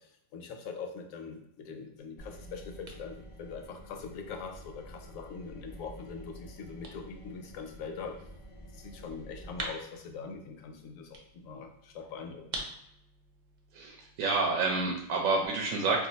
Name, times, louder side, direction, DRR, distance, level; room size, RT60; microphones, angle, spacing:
voice 1, 0.3-8.1 8.7-11.1 11.3-12.4, left 5 dB, 80° left, 4 dB, 1.0 m, -42 dB
sound 1, 2.0-15.5, right 2 dB, 60° right, 0.4 m, -49 dB
sound 2, 2.2-9.6, right 1 dB, 40° left, 0.5 m, -49 dB
voice 2, 13.7-16.1, right 3 dB, 80° right, 0 dB, 1.0 m, -29 dB
2.7 x 2.3 x 3.9 m, 0.77 s
omnidirectional pair, 1.4 m